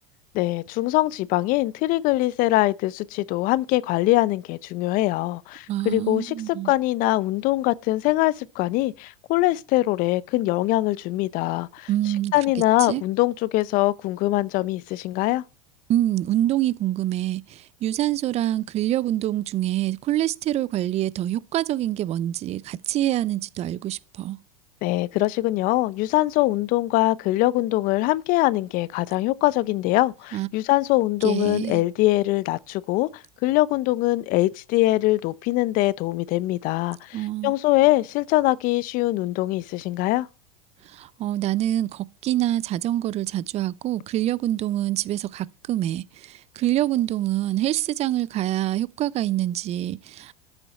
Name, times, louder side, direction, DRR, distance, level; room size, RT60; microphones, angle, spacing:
voice 1, 0.3-11.9 12.3-15.4 24.8-40.3, left 18 dB, 50° left, 0.7 m, -23 dB
voice 2, 5.7-6.7 11.9-12.3 12.9-13.0 15.9-24.4 30.3-30.5 31.2-31.8 37.1-37.5 40.8-50.3, right 13 dB, 35° right, 0.5 m, -26 dB
13.5 x 6.8 x 4.3 m
hypercardioid pair, 95°, 18 cm